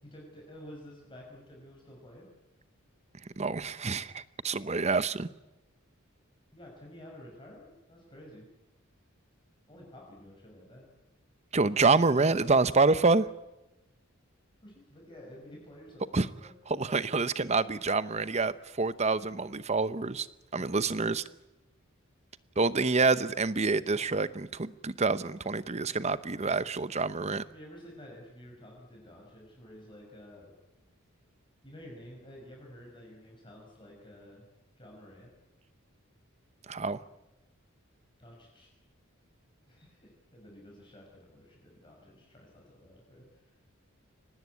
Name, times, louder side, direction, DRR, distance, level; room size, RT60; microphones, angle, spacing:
voice 1, 0.0-2.3 6.5-8.5 9.7-10.9 14.6-16.5 20.5-20.7 27.4-30.6 31.6-34.4 34.8-35.3 38.2-38.7 39.7-43.4, equal, 25° left, -2 dB, 5.8 m, -51 dB
voice 2, 3.4-5.3 11.5-13.3 16.1-16.3 16.7-20.3 20.5-21.2 22.6-27.4 36.7-37.0, right 3 dB, 30° right, 15 dB, 0.8 m, -27 dB
24.5 x 19.0 x 9.6 m, 1.0 s
head